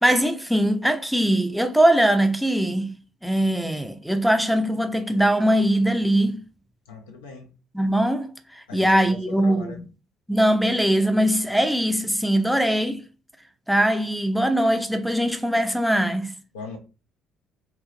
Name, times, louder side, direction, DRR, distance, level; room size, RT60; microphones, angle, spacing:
voice 1, 0.0-3.0 3.2-6.4 7.7-9.8 10.3-13.0 13.7-16.3, right 1 dB, ahead, 0.4 m, -21 dB
voice 2, 6.9-7.5 8.7-9.8 16.5-16.8, left 4 dB, 80° left, 0.5 m, -39 dB
2.7 x 2.1 x 2.4 m
figure-of-eight pair, 50°, 0 cm